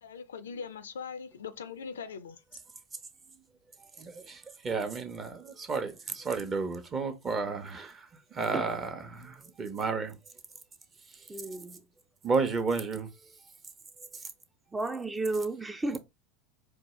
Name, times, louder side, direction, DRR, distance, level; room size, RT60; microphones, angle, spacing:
voice 1, 0.0-2.4, left 6 dB, 80° left, 0.4 m, -41 dB
voice 2, 4.0-10.2 11.2-11.3 12.2-13.1 14.0-14.2, right 4 dB, 30° right, 0.9 m, -32 dB
voice 3, 11.3-11.8 14.7-16.0, right 2 dB, 15° right, 0.5 m, -32 dB
4.5 x 2.3 x 3.1 m
hypercardioid pair, 85°, 0 cm